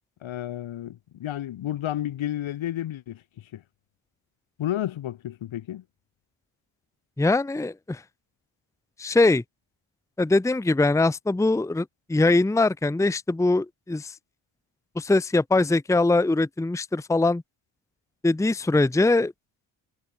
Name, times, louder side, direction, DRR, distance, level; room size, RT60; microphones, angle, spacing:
voice 1, 0.2-3.2 3.5-3.6 4.6-5.8, left 12 dB, 80° left, 4.3 m, -31 dB
voice 2, 7.2-8.0 9.0-9.4 10.2-14.2 15.0-17.4 18.2-19.3, left 2 dB, 5° left, 0.8 m, -22 dB
cardioid pair, 110°, 47 cm